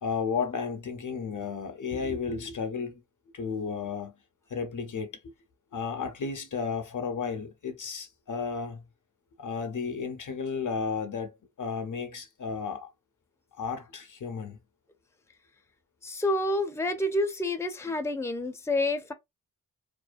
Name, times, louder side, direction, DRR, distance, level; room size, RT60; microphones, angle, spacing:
voice 1, 0.0-3.0 3.3-4.2 4.5-5.1 5.7-8.9 9.4-12.9 13.5-14.6, left 5 dB, 55° left, 0.7 m, -33 dB
voice 2, 16.0-19.1, left 1 dB, 5° left, 0.6 m, -28 dB
2.5 x 2.1 x 2.4 m
cardioid pair, 40°, 37 cm